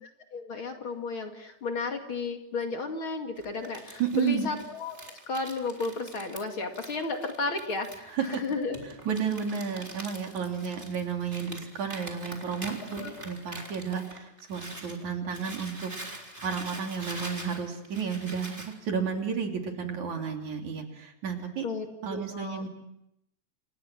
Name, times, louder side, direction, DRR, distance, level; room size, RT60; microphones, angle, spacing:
voice 1, 0.0-5.0 5.3-8.8 13.0-13.3 21.6-22.6, left 3 dB, 45° left, 4 dB, 2.9 m, -33 dB
Crumpling crinkling, 3.4-15.0 15.3-18.7, right 1 dB, 15° right, 4.1 m, -44 dB
voice 2, 4.0-4.5 8.1-8.4 9.1-21.6 22.0-22.7, right 6 dB, 70° right, 3 dB, 4.5 m, -32 dB
30.0 x 27.5 x 6.2 m, 0.80 s
omnidirectional pair, 3.5 m